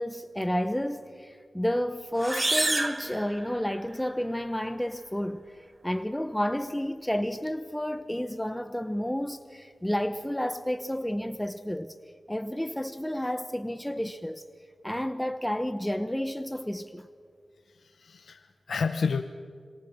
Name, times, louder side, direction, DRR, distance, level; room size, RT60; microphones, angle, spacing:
voice 1, 0.0-11.9 12.3-14.4 14.8-17.1, equal, 10° left, 0.9 m, -31 dB
sound 1, 2.2-4.0, right 2 dB, 30° right, 1.5 m, -29 dB
voice 2, 17.6-19.2, left 5 dB, 85° left, 0.8 m, -31 dB
27.0 x 22.5 x 7.4 m
cardioid pair, 55°, 0 cm